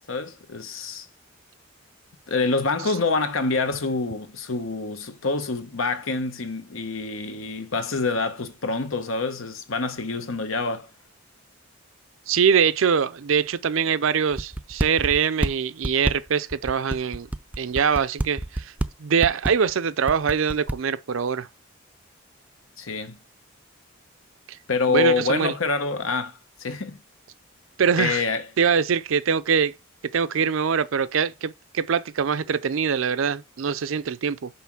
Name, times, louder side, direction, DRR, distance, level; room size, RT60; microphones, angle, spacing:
voice 1, 0.1-1.0 2.3-10.9 22.8-23.2 24.7-27.0 28.0-28.4, left 3 dB, 85° left, 1.1 m, -26 dB
voice 2, 12.3-17.3 17.6-18.7 19.0-21.5 24.9-25.5 27.8-28.2 28.6-29.7 30.1-34.5, right 6 dB, 75° right, 0.5 m, -23 dB
sound 1, 14.3-15.5 15.8-18.9 19.2-19.7 20.1-20.8, right 1 dB, 5° right, 0.3 m, -26 dB
5.8 x 4.9 x 6.0 m
head